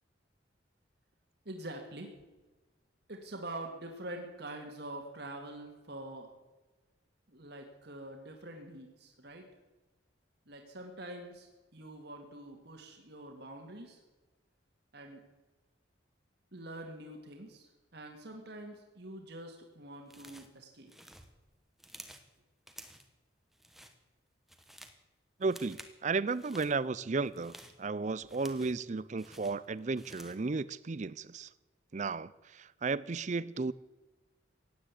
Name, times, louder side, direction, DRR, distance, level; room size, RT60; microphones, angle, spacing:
voice 1, 1.5-2.1 3.1-6.3 7.3-9.5 10.5-14.0 14.9-15.2 16.5-20.9, right 1 dB, 55° right, 2.0 m, -45 dB
sound 1, 20.1-20.6 20.9-22.3 22.7-23.1 23.5-24.0 24.3-25.0 25.4-26.0 26.3-26.7 27.2-28.9 29.2-30.5, right 1 dB, ahead, 1.2 m, -53 dB
voice 2, 25.4-31.5 31.9-33.7, right 4 dB, 40° right, 0.5 m, -34 dB
16.5 x 10.0 x 8.4 m
head